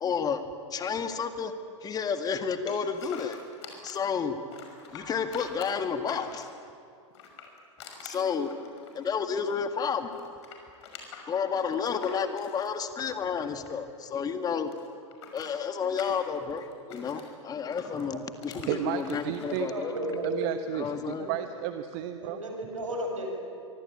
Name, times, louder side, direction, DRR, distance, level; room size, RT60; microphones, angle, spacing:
voice 1, 0.0-0.4 0.7-1.5 1.8-3.4 3.8-4.4 4.9-6.5 8.0-8.5 8.9-10.1 11.3-14.7 15.3-20.0 20.7-21.3, left 6 dB, 25° left, 8 dB, 1.9 m, -31 dB
sound 1, 2.7-4.1 4.5-6.6 7.1-9.6 9.9-14.1 14.3-17.3 17.7-19.6, left 6 dB, 60° left, 5.8 m, -46 dB
voice 2, 18.7-19.7 20.2-22.4, right 12 dB, 50° right, 8 dB, 1.3 m, -33 dB
voice 3, 19.7-20.3 21.2-21.3 22.2-23.3, right 2 dB, 80° right, 3 dB, 6.7 m, -33 dB
24.5 x 24.0 x 8.7 m, 2.5 s
figure-of-eight pair, 100°, 16 cm